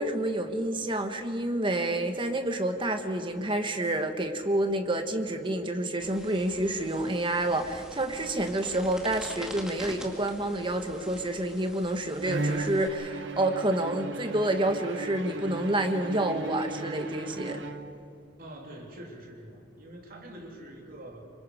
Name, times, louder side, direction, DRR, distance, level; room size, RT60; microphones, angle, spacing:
voice 1, 0.0-17.6, right 1 dB, 25° right, 6 dB, 1.4 m, -29 dB
sound 1, 6.0-12.9, equal, 5° right, 2.0 m, -46 dB
Bowed string instrument, 12.2-18.2, right 2 dB, 70° right, 1.0 m, -36 dB
voice 2, 18.4-21.2, right 1 dB, 50° right, 0 dB, 3.4 m, -45 dB
27.0 x 24.5 x 5.0 m, 2.5 s
head